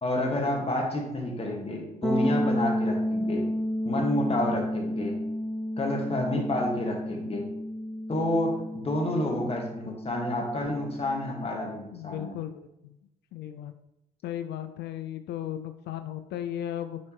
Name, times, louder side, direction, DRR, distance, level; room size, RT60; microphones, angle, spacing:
voice 1, 0.0-3.4 3.8-5.2 5.8-7.4 8.1-12.3, left 1 dB, 30° left, 0 dB, 1.7 m, -29 dB
sound 1, 2.0-11.7, equal, 5° right, 0.6 m, -31 dB
voice 2, 11.9-13.0 13.3-13.7 14.2-17.0, left 11 dB, 60° left, 10 dB, 0.4 m, -36 dB
7.1 x 4.2 x 3.1 m, 0.89 s
hypercardioid pair, 45°, 20 cm